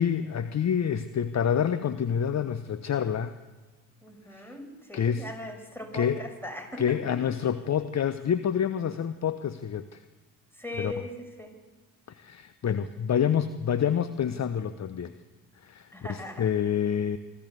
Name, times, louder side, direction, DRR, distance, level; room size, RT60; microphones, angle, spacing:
voice 1, 0.0-3.4 4.3-4.5 4.9-5.3 5.9-6.2 6.8-10.0 10.8-11.0 12.1-15.1 15.6-17.2, left 8 dB, 35° left, 12 dB, 0.9 m, -27 dB
voice 2, 4.0-7.2 10.5-11.6 15.9-16.5, left 1 dB, 5° left, 4 dB, 6.0 m, -39 dB
25.5 x 14.0 x 8.0 m, 1.4 s
hypercardioid pair, 50°, 45 cm